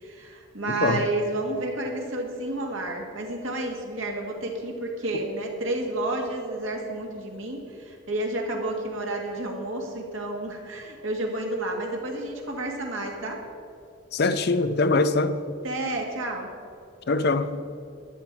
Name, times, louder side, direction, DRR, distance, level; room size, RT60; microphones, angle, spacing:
voice 1, 0.0-13.4 15.6-16.5, right 2 dB, 80° right, 2.0 m, -30 dB
voice 2, 0.7-1.0 14.1-15.4 17.1-17.7, left 3 dB, 55° left, 0.5 m, -23 dB
12.5 x 9.9 x 4.7 m
head